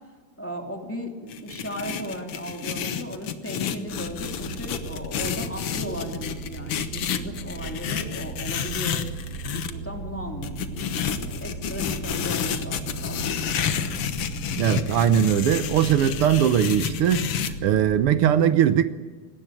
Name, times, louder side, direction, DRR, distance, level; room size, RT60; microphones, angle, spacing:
voice 1, 0.4-9.0 9.5-13.9, equal, 5° left, 2.8 m, -36 dB
sound 1, 1.3-9.7 10.4-17.5, left 8 dB, 90° left, 2.2 m, -30 dB
sound 2, 3.9-18.1, right 2 dB, 45° right, 5.4 m, -37 dB
voice 2, 14.6-18.8, right 9 dB, 80° right, 1.9 m, -20 dB
19.5 x 17.0 x 9.0 m
omnidirectional pair, 2.4 m